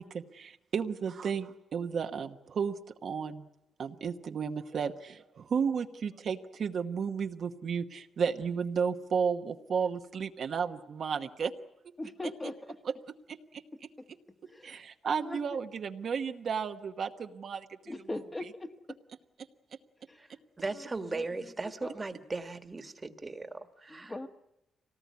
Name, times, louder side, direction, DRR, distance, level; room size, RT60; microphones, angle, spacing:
voice 1, 0.0-2.7 3.0-3.5 3.8-11.5 13.3-13.4 14.6-17.7, right 6 dB, 60° right, 6 dB, 1.1 m, -33 dB
voice 2, 12.0-12.8 13.7-14.1 14.4-15.6 17.9-19.0 20.1-20.3 20.6-21.5 21.8-22.0 23.9-24.3, left 2 dB, 20° left, 6 dB, 1.4 m, -41 dB
voice 3, 20.6-24.1, right 3 dB, 25° right, 9 dB, 1.5 m, -37 dB
25.0 x 18.5 x 9.4 m, 0.88 s
cardioid pair, 125°, 0 cm